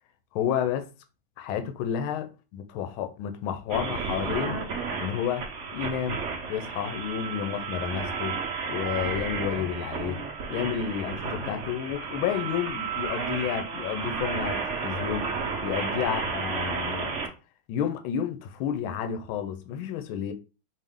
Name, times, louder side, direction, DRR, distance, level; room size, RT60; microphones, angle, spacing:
voice 1, 0.3-0.9 1.4-4.6 5.0-6.2 6.5-8.4 8.7-10.2 10.5-15.3 15.6-17.1 17.7-20.3, left 9 dB, 80° left, 1.4 m, -31 dB
sound 1, 3.7-17.3, right 5 dB, 60° right, 0.8 m, -32 dB
4.5 x 3.1 x 3.5 m
omnidirectional pair, 2.3 m